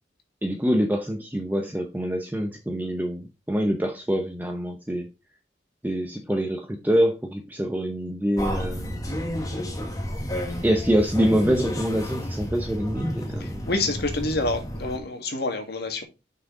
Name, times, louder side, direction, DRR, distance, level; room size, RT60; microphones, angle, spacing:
voice 1, 0.4-5.1 5.8-9.0 10.6-13.7, equal, 10° right, 0.7 m, -25 dB
sound 1, 8.4-15.0, equal, 20° left, 1.4 m, -31 dB
voice 2, 13.4-16.0, left 2 dB, 60° left, 1.9 m, -28 dB
6.2 x 5.7 x 3.8 m
head